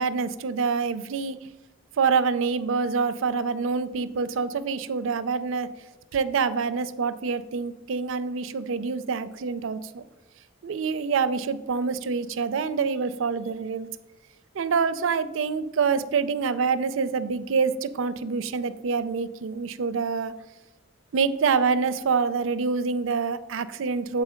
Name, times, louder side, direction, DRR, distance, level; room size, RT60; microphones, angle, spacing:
voice 1, 0.0-1.4 2.0-5.7 6.1-10.0 10.6-13.9 14.5-20.3 21.1-24.2, right 5 dB, 75° right, 14 dB, 0.4 m, -26 dB
7.3 x 4.1 x 5.0 m, 1.0 s
head